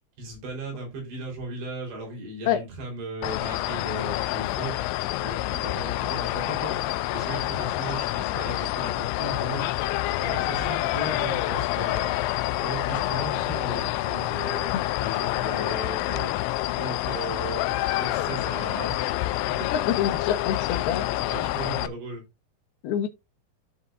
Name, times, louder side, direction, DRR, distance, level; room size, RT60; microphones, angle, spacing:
voice 1, 0.2-4.8 5.2-6.8 7.1-9.8 10.2-12.1 12.5-14.8 15.0-16.3 16.8-17.6 18.0-19.2 19.5-19.7 21.2-22.2, right 2 dB, 70° right, 6.2 m, -36 dB
sound 1, 3.2-21.9, left 16 dB, 85° left, 2.9 m, -27 dB
sound 2, 14.5-14.7 15.3-15.5 16.1-16.3 16.8-17.1 17.6-17.9 18.4-18.6 19.2-19.4 20.0-20.2 20.7-20.8, left 5 dB, 25° left, 2.8 m, -48 dB
voice 2, 19.7-21.5 22.8-23.1, left 9 dB, 70° left, 2.9 m, -27 dB
13.5 x 5.5 x 2.6 m
omnidirectional pair, 5.1 m